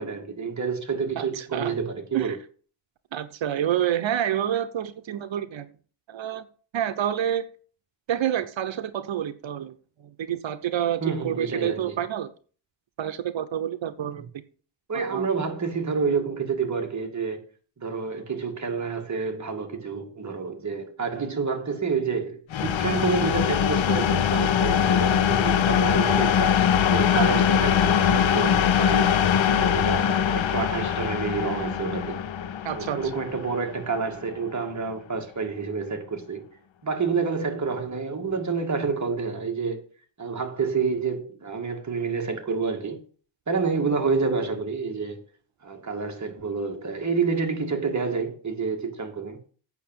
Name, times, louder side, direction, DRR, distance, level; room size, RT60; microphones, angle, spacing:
voice 1, 0.0-2.4 11.0-12.0 14.0-14.3 14.9-17.4 17.8-29.2 29.6-32.2 32.7-36.4 36.8-39.8 40.2-43.0 43.5-45.2 45.6-49.4, right 5 dB, 40° right, 2.1 m, -28 dB
voice 2, 1.2-1.8 2.1-2.4 3.1-5.7 6.1-6.5 6.7-7.4 8.1-9.7 10.0-12.3 13.0-14.3 15.1-15.3 32.6-33.2, right 10 dB, 85° right, 0.9 m, -28 dB
sound 1, 22.5-34.1, left 8 dB, 90° left, 0.9 m, -22 dB
8.3 x 6.1 x 7.4 m
wide cardioid pair, 110°, 44 cm